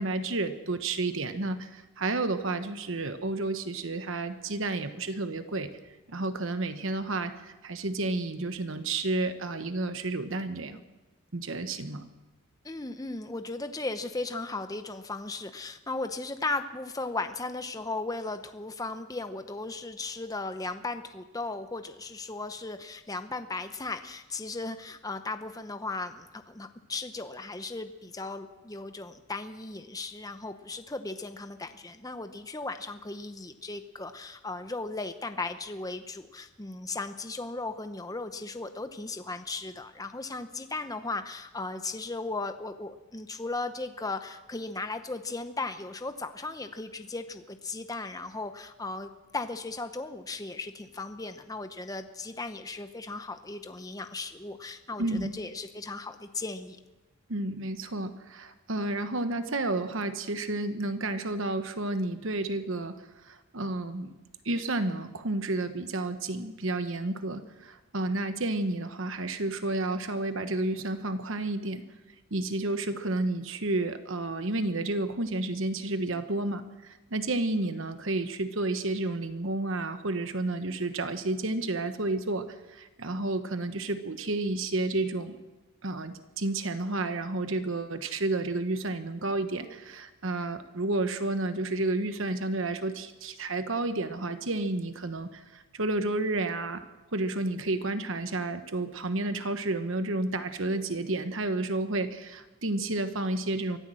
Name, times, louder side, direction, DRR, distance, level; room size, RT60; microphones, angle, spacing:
voice 1, 0.0-5.8 6.1-10.8 11.3-12.1 55.0-55.3 57.3-64.1 64.4-71.8 72.3-85.4 85.8-96.8 97.1-103.8, right 2 dB, 60° right, 9 dB, 1.1 m, -31 dB
voice 2, 12.6-56.8, left 3 dB, 15° left, 8 dB, 0.8 m, -36 dB
24.0 x 15.0 x 7.7 m, 1.1 s
head